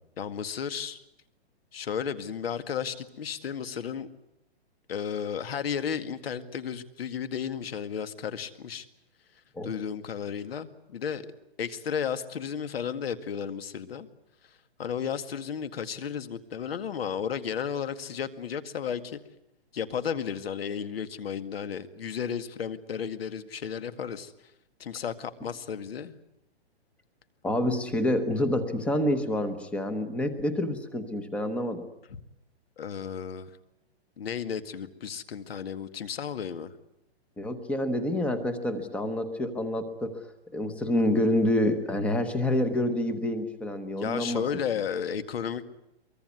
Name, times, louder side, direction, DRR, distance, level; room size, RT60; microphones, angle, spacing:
voice 1, 0.2-1.0 1.7-4.1 4.9-8.9 9.6-11.3 11.6-14.1 14.8-19.2 19.7-24.3 24.8-26.2 32.8-33.5 34.2-36.7 44.0-45.7, left 7 dB, 65° left, 11 dB, 2.0 m, -33 dB
voice 2, 27.4-31.9 37.4-40.2 40.5-44.4, left 1 dB, 5° left, 10 dB, 1.0 m, -27 dB
23.0 x 23.0 x 9.6 m, 0.84 s
hypercardioid pair, 170°, 32 cm